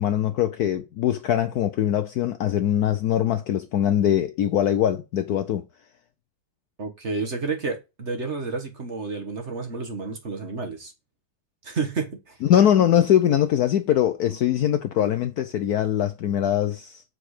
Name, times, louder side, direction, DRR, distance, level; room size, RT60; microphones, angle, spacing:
voice 1, 0.0-5.6 12.5-17.0, left 10 dB, 65° left, 1.0 m, -22 dB
voice 2, 6.8-10.9 11.6-12.4, right 4 dB, 40° right, 1.6 m, -30 dB
7.9 x 4.9 x 4.9 m
omnidirectional pair, 2.0 m